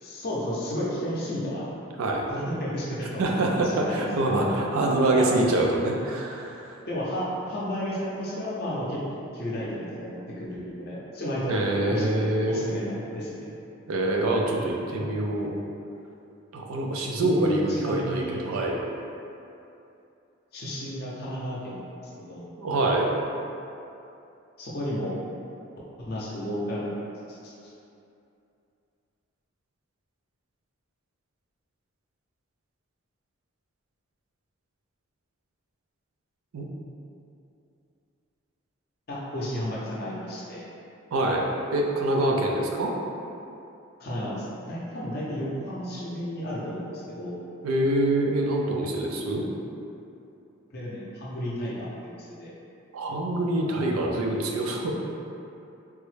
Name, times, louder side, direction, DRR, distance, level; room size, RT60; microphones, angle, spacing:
voice 1, 0.0-1.7 2.3-3.2 3.6-4.4 5.1-5.3 6.9-11.6 11.9-13.6 14.9-15.2 17.2-18.4 20.5-21.9 22.3-22.5 24.6-25.2 26.0-26.9 27.3-27.7 39.1-40.7 44.0-47.3 50.7-52.5, equal, 45° left, -6 dB, 0.5 m, -32 dB
voice 2, 3.2-6.8 11.5-12.8 13.9-15.5 16.5-18.8 22.6-23.1 36.5-36.6 41.1-41.4 41.7-42.9 47.6-49.4 52.9-54.9, right 1 dB, 90° right, 0 dB, 0.4 m, -25 dB
3.3 x 2.0 x 3.1 m, 2.7 s
head